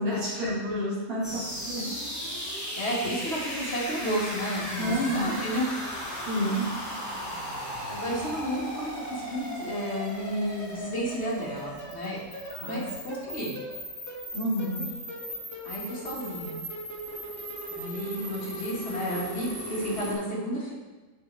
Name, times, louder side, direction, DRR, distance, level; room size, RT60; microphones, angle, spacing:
voice 1, 0.0-1.4 1.6-1.9 4.8-5.4 6.3-6.7 12.5-12.8 14.3-14.8, equal, 75° right, -10 dB, 3.1 m, -29 dB
sound 1, 1.2-20.1, equal, 10° left, 1.8 m, -36 dB
voice 2, 2.8-5.7 7.9-12.2 12.6-13.5 15.6-16.6 17.7-20.7, equal, 45° left, -5 dB, 2.3 m, -32 dB
9.1 x 6.5 x 3.4 m, 1.2 s
omnidirectional pair, 1.5 m